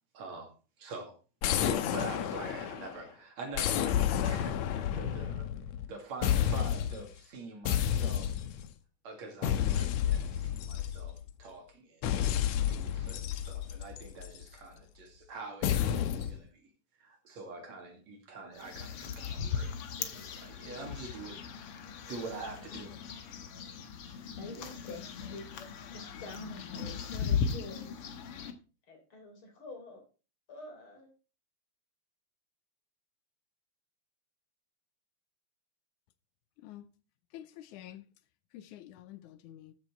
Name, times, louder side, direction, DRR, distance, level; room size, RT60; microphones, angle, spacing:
voice 1, 0.1-1.1 1.6-5.5 5.9-8.4 9.0-12.0 12.7-16.7 17.0-19.7 20.0-21.6 22.1-22.9 24.0-24.2, right 3 dB, 65° right, 3.6 m, -45 dB
sound 1, 1.4-3.0 3.5-5.9 6.2-7.1 7.6-8.7 9.4-11.3 12.0-14.4 15.6-16.4, left 10 dB, 75° left, 2.0 m, -31 dB
sound 2, 18.6-28.5, left 6 dB, 60° left, 1.9 m, -38 dB
voice 2, 24.3-25.5 25.9-28.0 28.9-30.0 30.5-31.1, left 2 dB, 45° left, 4.4 m, -47 dB
voice 3, 36.6-36.9 37.3-38.1 38.5-39.7, left 12 dB, 90° left, 2.2 m, -48 dB
13.5 x 7.2 x 4.5 m
omnidirectional pair, 3.4 m